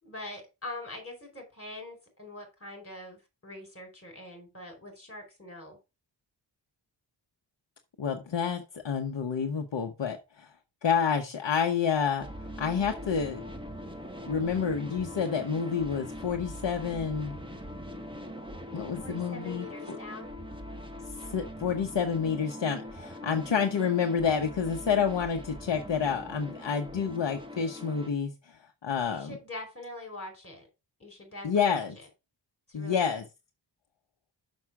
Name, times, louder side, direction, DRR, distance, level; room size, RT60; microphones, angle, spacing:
voice 1, 0.0-5.8 19.0-20.3 29.0-30.7 31.0-31.8 32.7-33.2, left 2 dB, 30° left, 4.8 m, -43 dB
voice 2, 8.0-10.5 10.8-12.3 12.6-13.4 14.3-17.4 18.7-20.0 21.3-28.6 28.8-29.4 31.4-32.0 32.7-33.2, left 6 dB, 70° left, 1.2 m, -29 dB
sound 1, 12.2-28.1, left 1 dB, 10° right, 1.4 m, -42 dB
6.5 x 6.2 x 4.8 m
wide cardioid pair, 105°, 45 cm